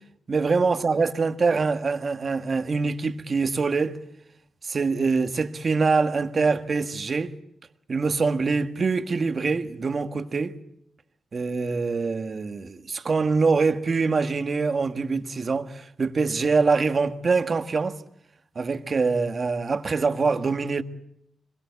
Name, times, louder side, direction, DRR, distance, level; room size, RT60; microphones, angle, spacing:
voice 1, 0.3-4.0 4.6-7.3 7.9-10.6 11.3-18.0 18.5-20.8, right 4 dB, 40° right, 1.5 m, -24 dB
26.0 x 22.0 x 8.2 m
cardioid pair, 110°, 0 cm